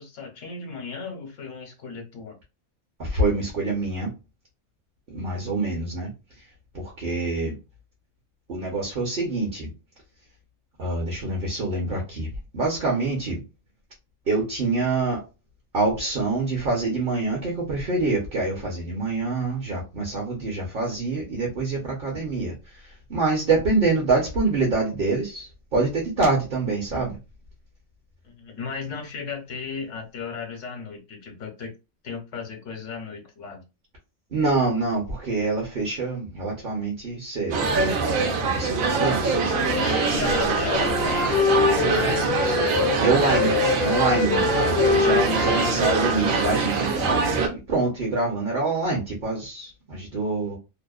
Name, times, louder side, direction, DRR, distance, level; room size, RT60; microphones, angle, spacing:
voice 1, 0.0-2.4 28.2-31.7 32.0-33.6 39.1-39.2 39.8-42.4, left 5 dB, 70° left, 1.0 m, -35 dB
voice 2, 3.0-4.1 5.1-6.1 6.7-7.5 8.5-9.7 10.8-13.4 14.3-15.2 15.7-27.2 34.3-39.4 43.0-50.6, right 3 dB, 50° right, 0.8 m, -26 dB
sound 1, 37.5-47.5, right 4 dB, 85° right, 1.0 m, -23 dB
Wind instrument woodwind instrument, 39.5-43.0 43.3-47.3, left 6 dB, 55° left, 0.7 m, -26 dB
2.7 x 2.0 x 2.3 m
omnidirectional pair, 1.4 m